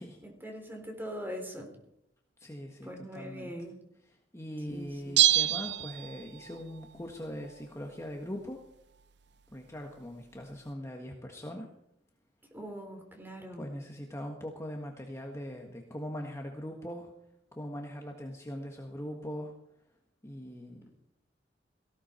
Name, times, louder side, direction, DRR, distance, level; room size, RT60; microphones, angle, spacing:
voice 1, 0.2-1.7 2.8-3.8 4.7-5.2 12.5-13.6, equal, 10° right, 3 dB, 3.7 m, -42 dB
voice 2, 2.4-3.5 4.0-8.6 9.5-11.7 13.6-17.1 17.5-19.5 20.2-20.8, equal, 15° left, 2 dB, 1.6 m, -41 dB
Bell, 5.2-6.6 6.8-6.9, right 12 dB, 65° right, 0.6 m, -26 dB
18.0 x 16.5 x 4.5 m, 0.77 s
head